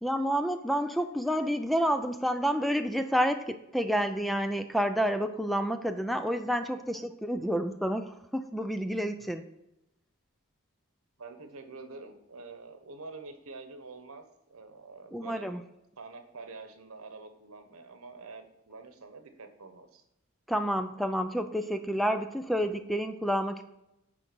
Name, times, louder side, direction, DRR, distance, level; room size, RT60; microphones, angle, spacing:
voice 1, 0.0-9.4 15.1-15.6 20.5-23.7, equal, ahead, 8 dB, 0.4 m, -29 dB
voice 2, 11.2-14.2 14.5-15.5 16.0-20.0, right 3 dB, 85° right, 7 dB, 1.1 m, -46 dB
9.9 x 3.8 x 6.2 m, 0.87 s
head